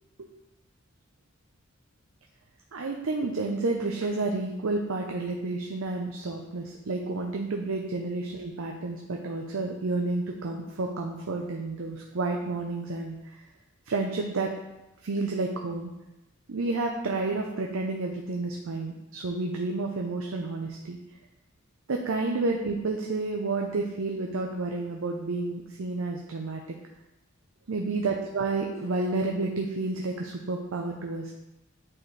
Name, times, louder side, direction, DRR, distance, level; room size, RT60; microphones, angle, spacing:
voice 1, 2.7-13.4 13.9-14.5 15.0-15.9 16.5-21.0 21.9-26.6 27.7-31.3, right 3 dB, 70° right, 1 dB, 0.6 m, -30 dB
8.6 x 4.2 x 3.3 m, 0.98 s
head